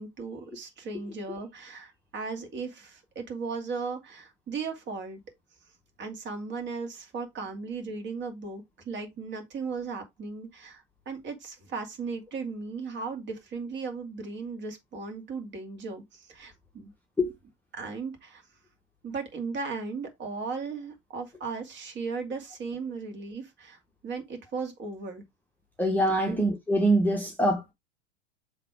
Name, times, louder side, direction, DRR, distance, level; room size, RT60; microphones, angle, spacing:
voice 1, 0.0-5.2 6.0-16.9 17.8-18.4 19.0-25.2 26.3-26.5, right 4 dB, 30° right, 2.3 m, -36 dB
voice 2, 25.8-27.7, right 1 dB, 5° left, 1.2 m, -24 dB
7.3 x 3.2 x 4.6 m
figure-of-eight pair, 90°, 36 cm